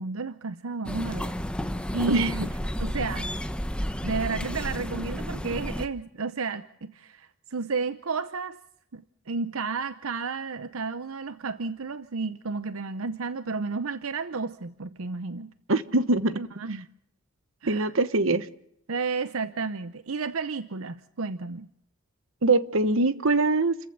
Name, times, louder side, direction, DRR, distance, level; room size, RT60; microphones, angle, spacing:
voice 1, 0.0-1.3 1.9-2.5 2.8-3.3 4.0-8.6 8.9-15.5 16.4-16.9 17.6-17.9 18.9-21.7, right 4 dB, 90° right, 13 dB, 0.8 m, -32 dB
sound 1, 0.8-5.9, equal, 5° left, 1.0 m, -31 dB
voice 2, 15.7-16.4 17.7-18.5 22.4-23.8, right 3 dB, 70° right, 13 dB, 1.2 m, -23 dB
29.0 x 15.0 x 6.7 m, 0.73 s
head